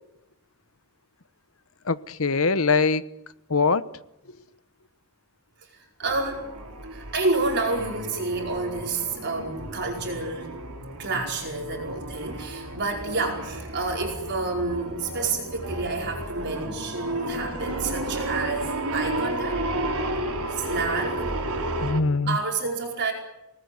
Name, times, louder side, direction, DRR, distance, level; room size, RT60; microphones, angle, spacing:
voice 1, 1.9-3.0 3.5-3.9 21.8-22.4, left 4 dB, 65° left, 1.1 m, -22 dB
voice 2, 5.6-6.5 6.9-10.5 11.0-19.6 20.5-21.4 22.3-23.1, right 3 dB, 50° right, 5.0 m, -29 dB
sound 1, 6.0-22.0, right 1 dB, 75° right, 4.1 m, -32 dB
28.5 x 19.5 x 9.7 m
head